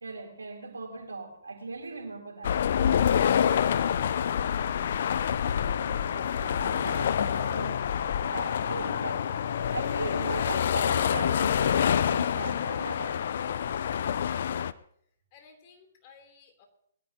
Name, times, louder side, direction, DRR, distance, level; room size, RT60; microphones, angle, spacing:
voice 1, 0.0-2.6 5.6-13.3, right 3 dB, 90° right, 3.6 m, -39 dB
sound 1, 2.4-14.7, left 8 dB, 60° left, 0.6 m, -27 dB
voice 2, 15.3-16.7, left 6 dB, 35° left, 3.3 m, -57 dB
22.0 x 13.5 x 2.9 m
hypercardioid pair, 135°, 0 cm